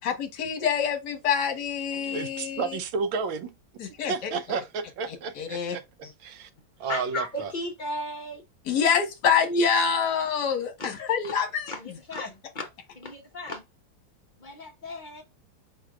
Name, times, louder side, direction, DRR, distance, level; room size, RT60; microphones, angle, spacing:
voice 1, 0.0-2.8 3.8-4.3 5.4-5.8 8.6-11.7, left 6 dB, 60° left, 1.7 m, -26 dB
voice 2, 1.9-3.5 4.1-5.8 6.2-6.5 6.8-7.5, right 5 dB, 80° right, 1.5 m, -32 dB
voice 3, 6.8-8.4 10.8-10.9 11.2-11.3 11.7-12.7 12.9-13.6 14.4-15.2, left 1 dB, 35° left, 0.8 m, -35 dB
4.7 x 4.4 x 2.4 m
omnidirectional pair, 2.1 m